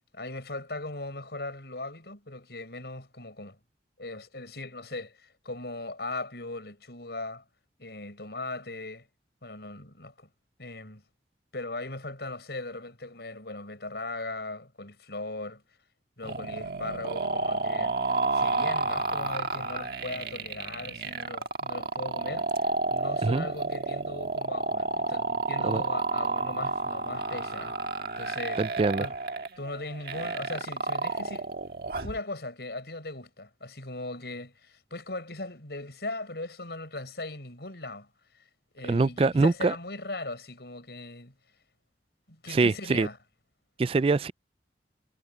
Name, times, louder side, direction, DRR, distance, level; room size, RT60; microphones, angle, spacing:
voice 1, 0.1-3.6 4.0-5.2 5.4-7.4 7.8-9.1 9.4-10.3 10.6-11.0 11.5-15.6 16.2-18.0 18.3-27.8 28.2-28.6 29.0-29.2 29.6-31.5 32.0-38.1 38.7-41.3 42.3-43.2, left 2 dB, 70° left, 4.9 m, -38 dB
sound 1, 16.2-32.2, right 3 dB, 60° right, 1.6 m, -31 dB
voice 2, 28.6-29.1 38.9-39.7 42.5-43.1 43.8-44.3, right 3 dB, 30° right, 0.3 m, -24 dB
head